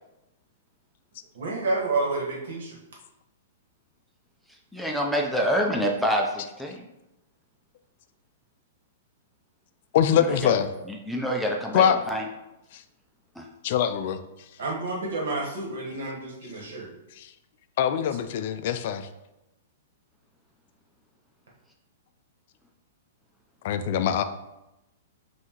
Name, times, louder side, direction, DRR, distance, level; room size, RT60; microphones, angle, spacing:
voice 1, 1.3-2.8 14.6-16.9, right 3 dB, 75° right, -2 dB, 1.5 m, -29 dB
voice 2, 4.7-6.9 10.3-10.5 10.9-12.2 13.4-13.5, equal, ahead, 0 dB, 0.5 m, -27 dB
voice 3, 9.9-10.7 11.7-12.0 12.7-12.8 13.6-14.2 17.2-17.3 17.8-19.1 23.6-24.2, left 9 dB, 55° left, 10 dB, 0.4 m, -23 dB
5.4 x 2.8 x 3.0 m, 0.91 s
hypercardioid pair, 135°, 0 cm